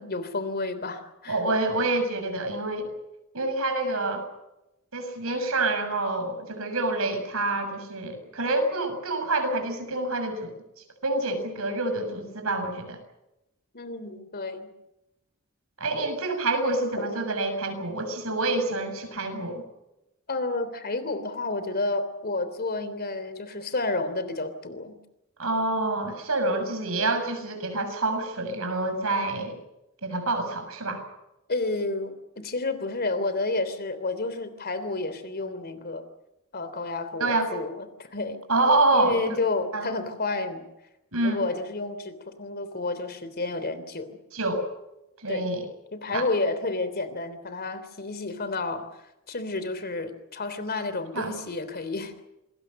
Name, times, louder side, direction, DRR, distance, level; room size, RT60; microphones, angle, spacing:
voice 1, 0.0-1.4 13.7-14.7 17.0-17.1 20.3-25.0 31.5-36.1 36.5-38.4 38.9-40.6 41.2-44.2 45.3-45.5 45.9-48.9 49.3-52.2, left 3 dB, 45° left, 12 dB, 3.3 m, -30 dB
voice 2, 1.3-2.9 3.3-4.3 4.9-10.5 11.0-13.0 15.8-19.6 25.4-29.6 30.0-31.0 37.2-37.5 38.5-39.4 39.7-39.9 41.1-41.5 44.3-44.6 45.2-45.7 46.1-46.2 51.1-51.3, right 2 dB, 70° right, 6 dB, 6.9 m, -27 dB
27.5 x 21.5 x 6.6 m, 0.90 s
head